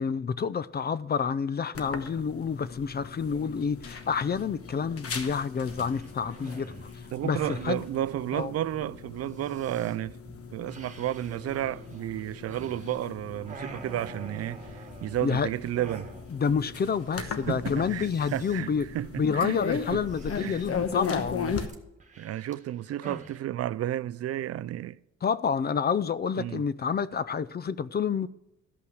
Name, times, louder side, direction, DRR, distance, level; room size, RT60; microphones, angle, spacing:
voice 1, 0.0-7.8 8.3-8.5 15.2-15.5 16.3-18.9 19.2-21.5 25.2-28.3, left 6 dB, 35° left, 0.5 m, -29 dB
sound 1, 1.7-21.7, left 6 dB, 50° left, 1.2 m, -38 dB
sound 2, 5.0-5.3 5.7-7.8 9.3-10.0 10.6-13.1 13.4-15.3 15.7-16.5 16.8-16.9 17.1-17.4 17.7-18.6 20.1-21.0 21.7-23.4, right 3 dB, 25° right, 1.6 m, -47 dB
voice 2, 7.1-10.2 10.5-16.1 17.2-19.6 19.9-20.0 20.4-20.6 22.2-25.0 26.4-26.6, right 12 dB, 55° right, 0.4 m, -32 dB
sound 3, 11.3-17.5, right 3 dB, 5° left, 2.4 m, -57 dB
13.5 x 5.6 x 6.2 m
cardioid pair, 90°, 30 cm